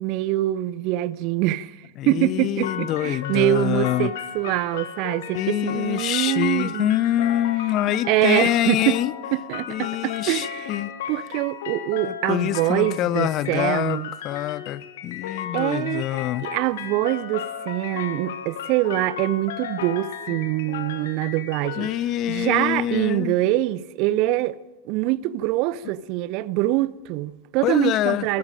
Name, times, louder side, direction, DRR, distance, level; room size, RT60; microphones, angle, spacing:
voice 1, 0.0-1.7 2.1-6.9 8.1-9.0 9.3-10.7 11.1-14.1 15.5-16.1 16.4-21.9 22.3-24.6 24.9-28.4, right 16 dB, 45° right, 0.7 m, -24 dB
voice 2, 2.0-4.1 5.3-9.1 9.7-10.9 12.0-16.5 20.3-20.4 21.8-23.4 27.6-28.4, left 13 dB, 35° left, 0.7 m, -25 dB
sound 1, 2.6-21.9, left 8 dB, 55° left, 2.3 m, -35 dB
27.0 x 21.5 x 5.2 m
figure-of-eight pair, 90°, 0 cm